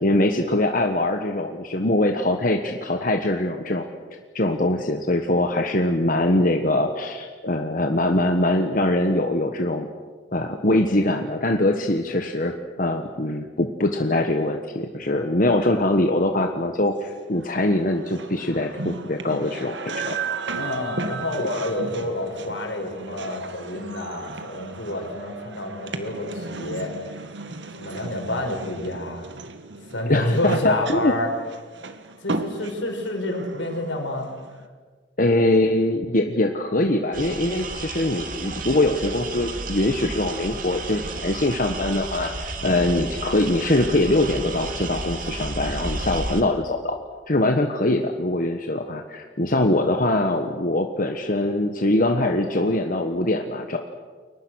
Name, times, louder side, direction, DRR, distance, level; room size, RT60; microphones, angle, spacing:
voice 1, 0.0-3.8 4.3-9.9 10.3-20.2 30.1-31.1 35.2-47.0 47.3-53.8, left 1 dB, 45° left, 4 dB, 1.4 m, -22 dB
sound 1, 17.1-34.7, right 3 dB, 75° right, 1.8 m, -35 dB
voice 2, 20.5-26.9 27.8-29.3 29.9-31.3 32.2-34.3 42.6-42.8, left 1 dB, 80° left, 3 dB, 5.7 m, -28 dB
sound 2, 37.1-46.4, right 3 dB, 45° right, 2.3 m, -32 dB
29.5 x 23.0 x 6.5 m, 1.5 s
head